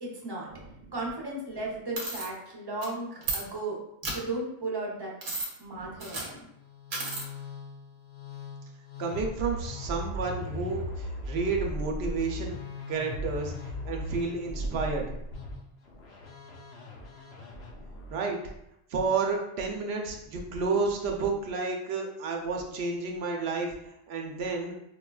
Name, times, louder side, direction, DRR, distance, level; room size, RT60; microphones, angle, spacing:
voice 1, 0.0-0.5 0.9-5.1 5.6-6.5, right 2 dB, 25° right, -4 dB, 0.7 m, -35 dB
sound 1, 2.0-2.3 2.8-2.9 3.2-3.4 4.0-4.1 5.2-5.5 6.0-6.3 6.9-7.3, right 3 dB, 55° right, 0.8 m, -32 dB
Musical instrument, 6.5-18.3, left 1 dB, 85° left, 0.9 m, -39 dB
voice 2, 9.0-12.5 12.9-13.5 13.8-15.1 18.1-18.4 18.9-23.7 24.1-24.8, right 4 dB, 85° right, 1 dB, 0.9 m, -30 dB
4.6 x 2.2 x 2.2 m, 0.81 s
omnidirectional pair, 1.0 m